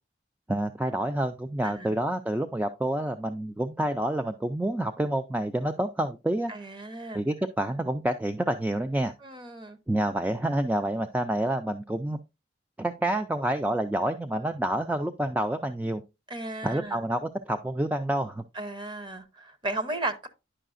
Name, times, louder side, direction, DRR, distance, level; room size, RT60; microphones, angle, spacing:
voice 1, 0.5-6.5 7.1-9.1 9.9-12.2 12.8-16.0 16.6-18.4, right 1 dB, 10° right, 0.3 m, -28 dB
voice 2, 1.6-2.0 6.5-7.2 9.2-9.8 16.3-17.0 18.5-20.3, right 2 dB, 25° right, 0.8 m, -35 dB
9.9 x 5.5 x 2.5 m
head